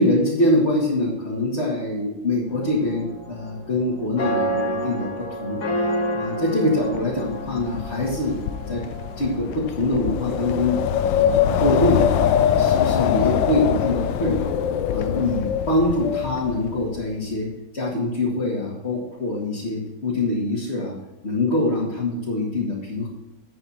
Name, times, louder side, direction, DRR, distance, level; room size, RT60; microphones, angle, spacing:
voice 1, 0.0-5.6 6.1-8.4 8.7-8.8 9.2-10.8 11.1-14.5 14.9-17.5 17.7-20.9 21.2-23.1, left 1 dB, 35° left, -6 dB, 2.2 m, -24 dB
sound 1, 2.5-9.6, equal, 60° left, 2.3 m, -29 dB
Wind, 6.9-17.0, left 9 dB, 80° left, 1.3 m, -23 dB
11.0 x 8.2 x 2.9 m, 1.1 s
omnidirectional pair, 2.0 m